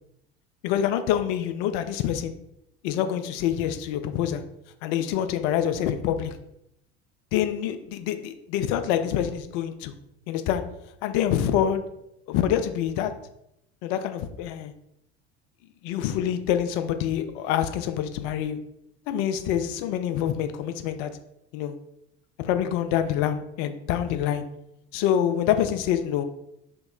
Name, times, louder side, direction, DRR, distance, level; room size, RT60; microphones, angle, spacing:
voice 1, 0.6-2.3 2.8-4.4 4.8-6.3 7.3-9.9 10.3-10.6 11.0-11.8 12.3-13.1 13.8-14.7 15.8-18.6 19.1-21.1 21.5-21.7 22.4-24.4 24.9-26.2, left 10 dB, 45° left, 9 dB, 0.4 m, -26 dB
2.9 x 2.9 x 3.6 m, 0.80 s
figure-of-eight pair, 70°, 33 cm